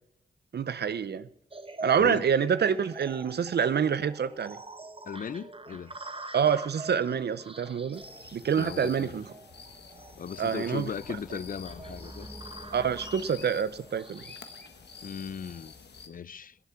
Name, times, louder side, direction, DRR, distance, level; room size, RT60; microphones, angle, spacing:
voice 1, 0.5-1.3 1.8-4.6 6.3-8.0 8.3-9.2 10.4-10.9 12.7-14.3, right 7 dB, 75° right, 0.6 m, -27 dB
sound 1, 1.5-15.8, right 2 dB, 30° right, 1.2 m, -46 dB
voice 2, 2.0-2.3 5.1-6.0 8.6-9.2 10.2-12.3 15.0-15.7 16.1-16.6, left 7 dB, 55° left, 0.4 m, -37 dB
sound 2, 7.9-16.1, left 5 dB, 75° left, 1.4 m, -48 dB
sound 3, 9.6-14.3, equal, ahead, 1.3 m, -49 dB
17.0 x 8.2 x 5.7 m
cardioid pair, 50°, 17 cm